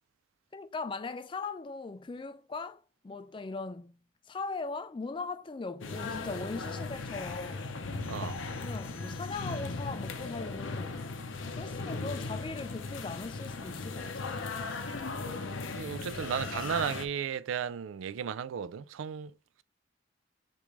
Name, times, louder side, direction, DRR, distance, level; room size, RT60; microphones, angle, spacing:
voice 1, 0.5-4.0 4.3-7.7 8.2-11.0 11.5-14.5, left 3 dB, 25° left, 0.3 m, -40 dB
sound 1, 5.8-17.1, left 3 dB, 80° left, 0.7 m, -37 dB
voice 2, 15.7-19.3, right 7 dB, 90° right, 0.4 m, -34 dB
6.7 x 2.5 x 3.1 m
head